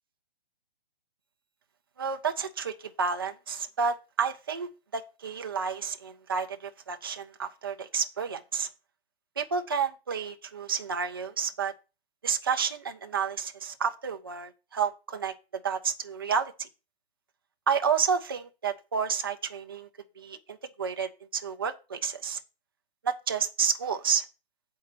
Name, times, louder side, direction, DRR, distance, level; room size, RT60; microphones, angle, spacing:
voice 1, 2.0-8.7 9.4-11.7 12.2-15.3 15.6-16.7 17.7-19.9 20.2-22.4 23.0-24.2, right 6 dB, 25° right, 0.4 m, -30 dB
7.9 x 4.4 x 6.5 m
hypercardioid pair, 165°, 31 cm